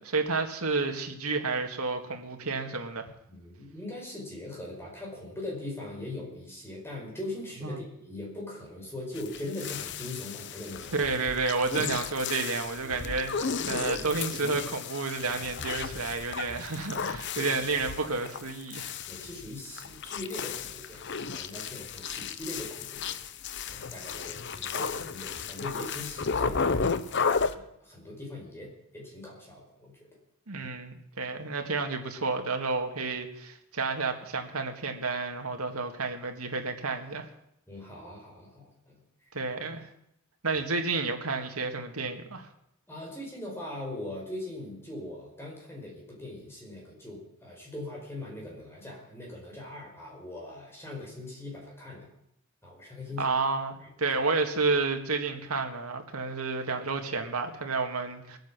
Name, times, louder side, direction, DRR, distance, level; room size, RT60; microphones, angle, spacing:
voice 1, 0.0-3.1 7.6-7.8 10.9-18.9 30.5-37.3 39.3-39.9 40.4-42.5 53.2-53.7 54.0-58.4, right 3 dB, 80° right, 4 dB, 2.0 m, -30 dB
voice 2, 3.3-11.1 11.8-11.9 12.8-13.0 13.7-14.1 17.3-17.6 19.1-21.0 21.3-23.2 23.7-27.2 27.5-30.1 37.7-39.3 40.5-40.6 42.9-52.1 52.6-53.4 53.8-54.2, left 1 dB, 10° left, -2 dB, 5.1 m, -41 dB
sound 1, 9.2-27.5, left 5 dB, 50° left, 0.8 m, -34 dB
21.0 x 9.2 x 7.5 m, 0.76 s
head